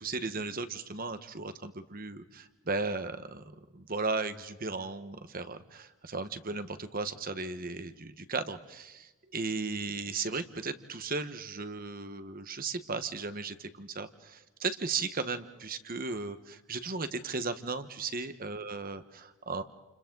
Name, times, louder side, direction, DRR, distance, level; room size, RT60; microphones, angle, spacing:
voice 1, 0.0-19.6, right 4 dB, 40° right, 10 dB, 1.4 m, -36 dB
29.5 x 29.0 x 3.9 m, 1.1 s
head